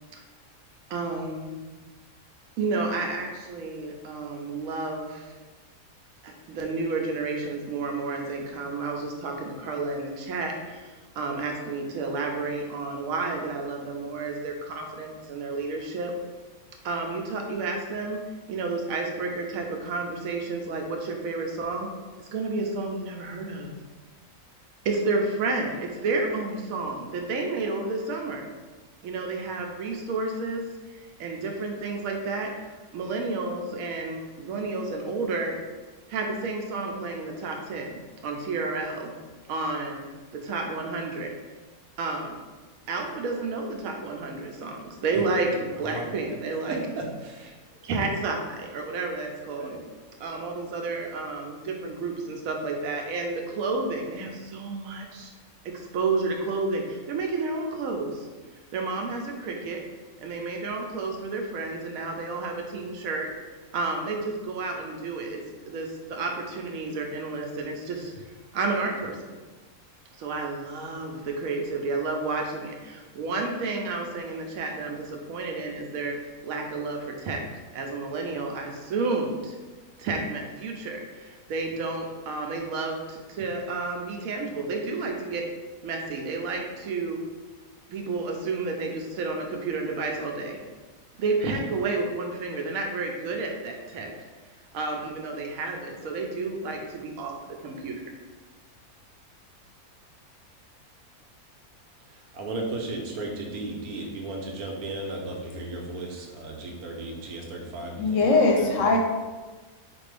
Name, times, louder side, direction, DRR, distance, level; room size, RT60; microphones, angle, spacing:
voice 1, 0.9-1.6 2.6-5.3 6.2-16.1 16.8-18.2 18.5-21.9 22.2-23.7 24.8-28.5 29.0-32.5 32.9-35.5 36.1-39.1 39.5-40.0 40.3-41.3 42.0-42.4 42.9-46.8 47.8-49.8 50.2-55.3 55.6-58.3 58.7-59.8 60.2-63.3 63.7-68.2 68.5-69.2 70.2-76.2 76.4-77.4 77.7-79.6 80.0-85.4 85.8-87.2 87.9-90.6 91.2-94.1 94.7-98.0, right 3 dB, 75° right, 2 dB, 1.0 m, -31 dB
voice 2, 45.1-45.5 45.8-46.1 46.7-47.5 49.5-49.9 102.3-109.0, right 2 dB, 90° right, 0 dB, 1.2 m, -35 dB
voice 3, 108.0-109.0, left 3 dB, 65° left, 1 dB, 0.8 m, -20 dB
4.5 x 2.5 x 3.3 m, 1.3 s
omnidirectional pair, 1.5 m